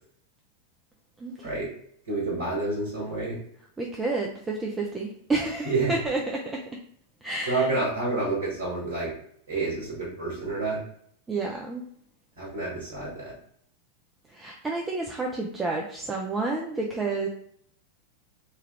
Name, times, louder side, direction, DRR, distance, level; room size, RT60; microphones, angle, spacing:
voice 1, 2.0-3.4 5.6-5.9 7.5-9.1 9.5-10.8 12.4-13.3, right 3 dB, 70° right, -6 dB, 1.3 m, -28 dB
voice 2, 3.8-6.5 7.2-7.7 11.3-11.9 14.3-17.3, right 3 dB, 15° right, -1 dB, 0.4 m, -30 dB
3.3 x 2.3 x 3.2 m, 0.65 s
figure-of-eight pair, 90°, 0 cm